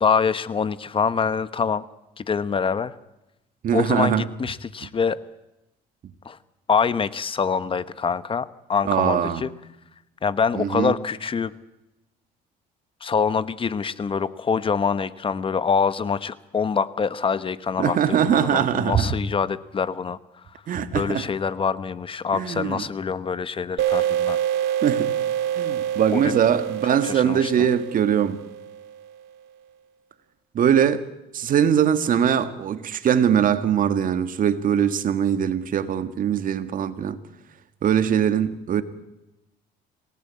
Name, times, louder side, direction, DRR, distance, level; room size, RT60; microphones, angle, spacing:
voice 1, 0.0-1.8 2.2-2.9 3.7-5.2 6.2-6.4 6.7-9.5 10.2-11.6 13.0-20.5 20.9-24.4 26.1-26.4 26.8-27.7, left 6 dB, 30° left, 1.0 m, -25 dB
voice 2, 3.6-4.2 8.9-9.4 10.6-10.9 17.8-19.2 20.7-21.3 22.3-22.8 24.8-25.1 25.6-28.4 30.6-31.0 31.3-37.2 37.8-38.8, right 8 dB, 55° right, 1.8 m, -21 dB
sound 1, 23.8-29.1, right 10 dB, 80° right, 1.9 m, -26 dB
27.5 x 18.0 x 8.6 m
cardioid pair, 110°, 17 cm